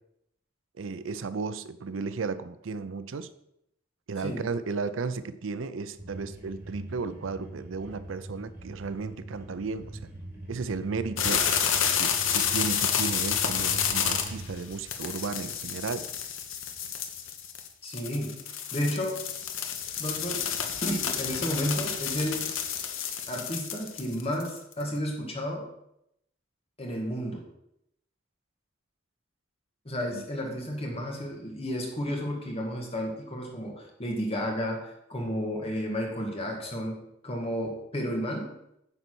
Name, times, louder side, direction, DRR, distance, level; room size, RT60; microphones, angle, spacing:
voice 1, 0.8-3.3 4.1-10.0 10.5-11.4 12.0-16.1 30.1-30.2, right 4 dB, 75° right, 13 dB, 0.5 m, -34 dB
sound 1, 6.0-14.5, right 1 dB, 10° right, 2.7 m, -42 dB
sound 2, 11.2-24.8, left 8 dB, 85° left, 1.0 m, -30 dB
voice 2, 17.8-18.4 18.7-19.2 20.0-20.5 20.8-22.5 23.3-25.7 26.8-27.5 29.9-38.5, equal, 30° left, 0 dB, 2.0 m, -32 dB
9.6 x 4.0 x 6.2 m, 0.79 s
head